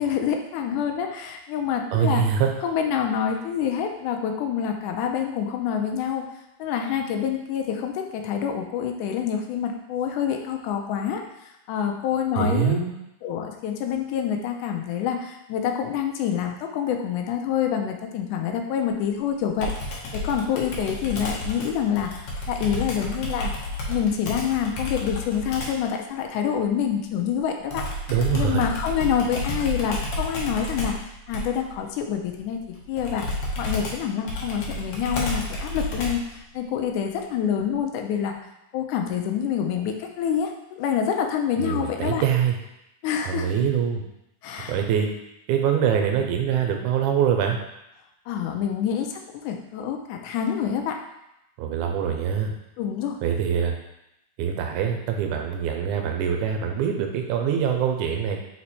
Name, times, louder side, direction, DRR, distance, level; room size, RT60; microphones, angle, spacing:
voice 1, 0.0-2.2 2.6-6.2 6.6-12.8 13.2-22.1 22.5-23.5 23.9-27.9 28.3-38.4 38.7-42.2 43.0-43.7 44.4-44.8 48.3-51.0 52.8-53.2, left 8 dB, 85° left, 3 dB, 2.1 m, -27 dB
voice 2, 1.9-2.5 12.4-13.0 28.1-28.6 41.6-42.6 43.3-44.0 44.7-45.1 45.5-47.6 51.6-52.5 53.2-53.7 54.4-58.4, right 8 dB, 80° right, 3 dB, 2.1 m, -24 dB
Computer keyboard, 19.6-25.9 27.7-36.4, left 1 dB, 65° left, 1.9 m, -31 dB
5.0 x 4.4 x 4.2 m, 0.86 s
omnidirectional pair, 3.5 m